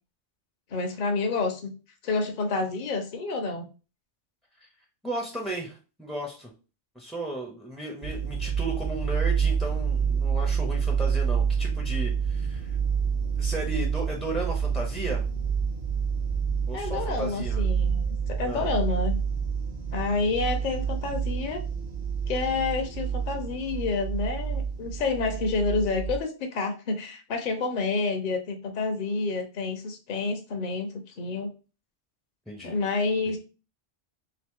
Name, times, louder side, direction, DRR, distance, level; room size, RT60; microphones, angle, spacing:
voice 1, 0.7-1.7 2.0-3.7 16.7-18.0 18.3-19.1 19.9-21.6 22.3-31.5 32.6-33.4, left 3 dB, 55° left, 5 dB, 0.6 m, -29 dB
voice 2, 5.0-6.5 6.9-12.8 13.4-15.2 16.7-17.6 18.4-18.7 32.5-32.8 33.3-33.4, right 1 dB, ahead, 0 dB, 0.3 m, -35 dB
sound 1, 8.0-26.2, right 6 dB, 45° right, 0.6 m, -28 dB
2.9 x 2.8 x 3.5 m, 0.34 s
omnidirectional pair, 1.2 m